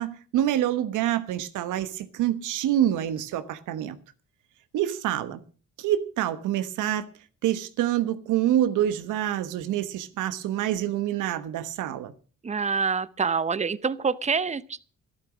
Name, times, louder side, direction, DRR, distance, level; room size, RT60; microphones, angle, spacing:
voice 1, 0.0-4.0 4.7-5.4 5.8-7.1 7.4-12.1, right 12 dB, 90° right, 1.3 m, -26 dB
voice 2, 12.4-14.8, right 5 dB, 25° right, 0.8 m, -26 dB
13.0 x 12.0 x 6.2 m
cardioid pair, 90°, 30 cm